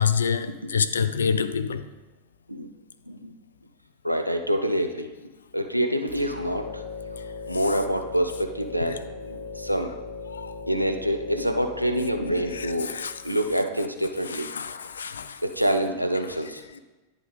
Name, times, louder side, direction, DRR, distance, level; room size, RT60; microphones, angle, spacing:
voice 1, 0.0-1.8 10.3-10.5 12.9-13.1 14.5-15.4, left 6 dB, 70° left, 0.4 m, -26 dB
voice 2, 4.0-5.1 5.5-6.8 7.5-9.0 9.3-10.0 10.7-12.9 13.2-14.5 15.4-16.8, equal, 90° right, 0.5 m, -26 dB
sound 1, 6.1-13.6, left 3 dB, 85° left, 0.7 m, -38 dB
10.5 x 3.6 x 3.8 m
figure-of-eight pair, 90°, 0 cm